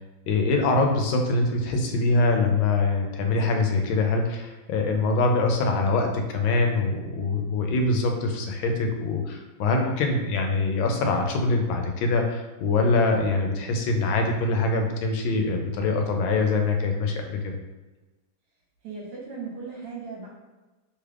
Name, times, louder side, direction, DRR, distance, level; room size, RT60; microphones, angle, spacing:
voice 1, 0.3-17.6, left 3 dB, 85° left, 3 dB, 1.3 m, -24 dB
voice 2, 18.8-20.3, right 4 dB, 65° right, -3 dB, 1.5 m, -37 dB
3.3 x 2.3 x 3.3 m, 1.2 s
omnidirectional pair, 2.1 m